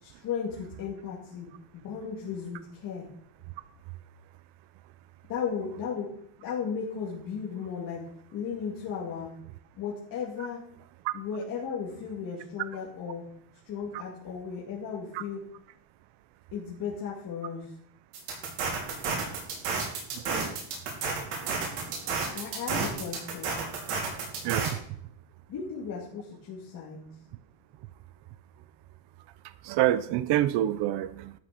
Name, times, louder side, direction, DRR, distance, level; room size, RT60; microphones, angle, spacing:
voice 1, 0.0-3.1 5.3-8.0 8.3-9.3 9.7-10.6 11.1-13.2 13.6-15.5 16.5-17.7 22.3-23.6 25.5-27.1, left 6 dB, 40° left, -5 dB, 2.5 m, -35 dB
sound 1, 18.1-24.7, right 4 dB, 85° right, 4.9 m, -31 dB
voice 2, 24.4-24.8 29.6-31.3, right 13 dB, 55° right, 15 dB, 0.8 m, -27 dB
12.5 x 6.4 x 6.7 m, 0.66 s
cardioid pair, 175°, 50 cm